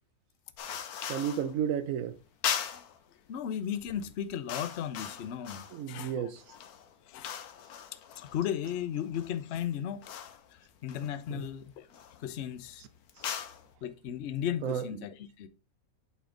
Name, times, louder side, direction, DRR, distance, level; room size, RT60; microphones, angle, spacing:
sound 1, 0.6-1.5 2.4-3.0 3.7-3.9 4.2-5.9 6.4-9.4 10.0-10.5 10.9-11.5 11.9-12.2 13.1-13.7, left 8 dB, 90° left, 1.3 m, -39 dB
voice 1, 1.1-2.2 5.7-6.4 11.3-11.5 14.6-14.9, right 8 dB, 70° right, 1.0 m, -32 dB
voice 2, 3.3-6.6 7.1-7.4 7.9-10.2 10.5-11.9 12.2-12.8 13.8-15.5, left 9 dB, 60° left, 0.8 m, -36 dB
8.3 x 4.3 x 3.8 m
omnidirectional pair, 1.6 m